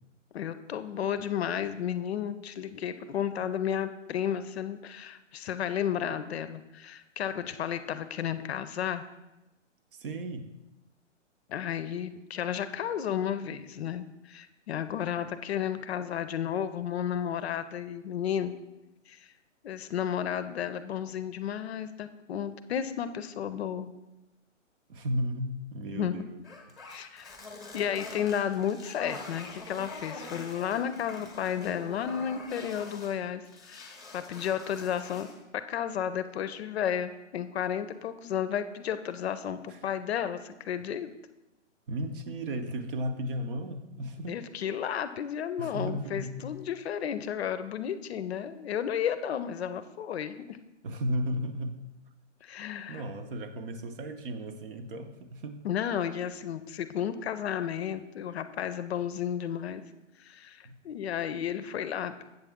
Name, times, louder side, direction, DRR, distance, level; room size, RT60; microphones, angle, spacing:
voice 1, 0.3-9.0 11.5-18.5 19.1-19.3 19.6-23.9 25.9-26.3 26.9-27.3 27.7-35.3 35.5-41.1 44.3-50.6 52.4-53.0 55.6-59.8 60.2-62.3, left 9 dB, 55° left, 12 dB, 0.6 m, -33 dB
voice 2, 9.9-10.5 24.9-26.4 39.7-39.9 41.9-44.4 45.6-46.5 50.8-51.8 52.9-55.7 60.6-60.8, equal, 45° right, 8 dB, 0.7 m, -34 dB
sound 1, 26.4-33.2 33.4-35.4, left 3 dB, ahead, 0.9 m, -45 dB
8.0 x 6.7 x 3.6 m, 0.98 s
hypercardioid pair, 145°, 37 cm